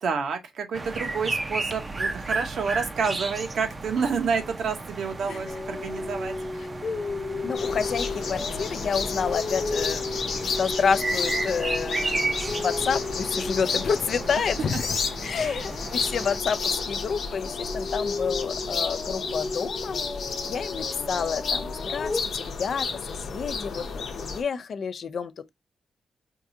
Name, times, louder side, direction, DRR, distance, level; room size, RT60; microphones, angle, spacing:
voice 1, 0.0-6.3 14.4-14.7 15.4-15.6, right 5 dB, 75° right, 0.8 m, -29 dB
sound 1, 0.7-16.4, right 3 dB, 30° right, 0.5 m, -34 dB
sound 2, 5.4-15.2 15.6-22.2, left 3 dB, 35° left, 1.1 m, -34 dB
voice 2, 7.4-14.8 15.2-20.0 20.4-25.5, left 6 dB, 60° left, 0.4 m, -29 dB
sound 3, 7.5-24.4, left 5 dB, 80° left, 0.8 m, -32 dB
4.6 x 2.3 x 2.6 m
cardioid pair, 100°, 0 cm